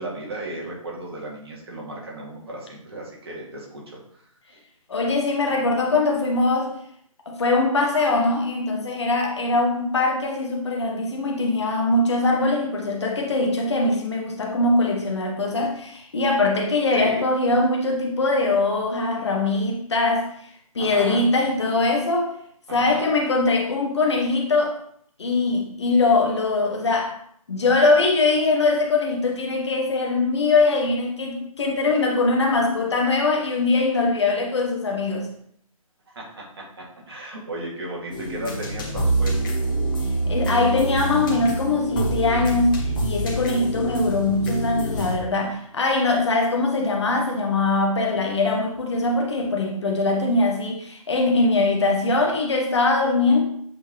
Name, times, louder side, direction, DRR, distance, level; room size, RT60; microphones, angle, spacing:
voice 1, 0.0-4.6 16.9-17.2 20.8-21.2 22.7-23.0 36.2-36.3 37.1-39.5, right 1 dB, 45° right, -3 dB, 2.2 m, -35 dB
voice 2, 4.9-6.7 7.3-20.3 20.7-22.3 22.7-24.8 25.2-27.1 27.5-35.3 40.3-53.4, left 3 dB, 50° left, 1 dB, 1.1 m, -22 dB
sound 1, 38.1-45.2, right 2 dB, 35° left, 1.7 m, -26 dB
7.7 x 4.2 x 3.1 m, 0.66 s
figure-of-eight pair, 140°, 18 cm